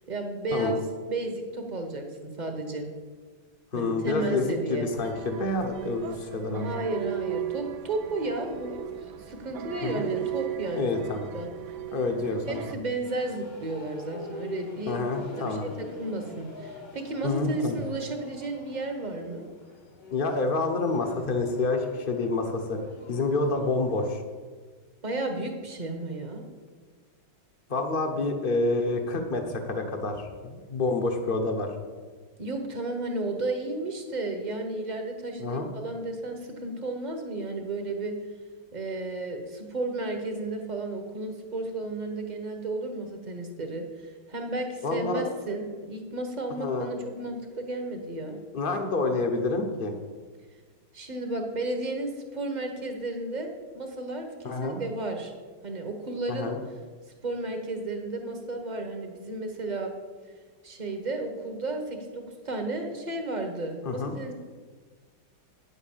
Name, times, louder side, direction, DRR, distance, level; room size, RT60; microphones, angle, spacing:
voice 1, 0.1-2.9 3.7-4.9 6.5-8.8 9.2-11.1 11.3-11.5 12.1-15.1 15.3-19.5 25.0-26.4 32.4-38.1 38.7-48.4 50.9-55.3 55.6-56.6 57.2-59.9 60.6-64.3, right 2 dB, 25° right, 3 dB, 1.1 m, -33 dB
voice 2, 3.7-6.8 9.8-10.0 10.8-11.3 11.9-12.6 14.9-15.6 17.2-17.8 20.1-22.8 23.1-24.2 27.7-31.7 35.4-35.7 44.8-45.2 46.6-46.9 48.5-49.9 54.4-54.8 56.3-56.6 63.8-64.1, left 3 dB, 35° left, 5 dB, 1.0 m, -28 dB
sound 1, 5.0-12.7, right 12 dB, 70° right, 1.0 m, -37 dB
sound 2, 13.0-24.1, left 2 dB, 75° left, 2.9 m, -45 dB
9.5 x 7.2 x 7.3 m, 1.5 s
omnidirectional pair, 2.2 m